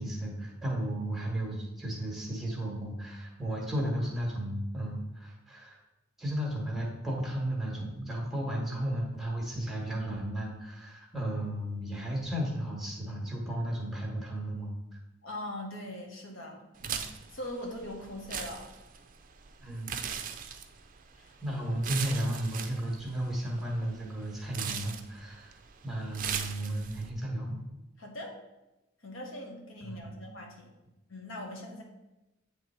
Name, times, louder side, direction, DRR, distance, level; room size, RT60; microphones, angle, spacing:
voice 1, 0.0-5.8 6.2-14.7 16.8-17.0 19.6-20.3 21.4-25.5 25.8-27.6 29.8-30.3, right 1 dB, ahead, -2 dB, 1.3 m, -34 dB
voice 2, 15.2-16.6 17.3-18.7 21.1-21.3 28.0-28.4 29.0-30.7 31.1-31.8, left 1 dB, 85° left, 1 dB, 1.2 m, -41 dB
sound 1, 16.8-27.1, right 8 dB, 45° right, 0.5 m, -40 dB
8.7 x 3.3 x 4.3 m, 0.96 s
head